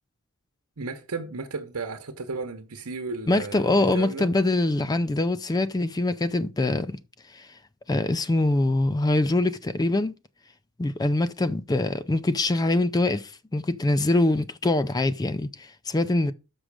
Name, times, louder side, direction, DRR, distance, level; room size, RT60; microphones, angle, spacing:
voice 1, 0.8-4.3, right 4 dB, 80° right, 1.0 m, -34 dB
voice 2, 3.3-7.0 7.3-7.5 7.9-10.1 10.8-16.3, left 2 dB, 20° left, 0.4 m, -24 dB
6.3 x 6.2 x 4.8 m
head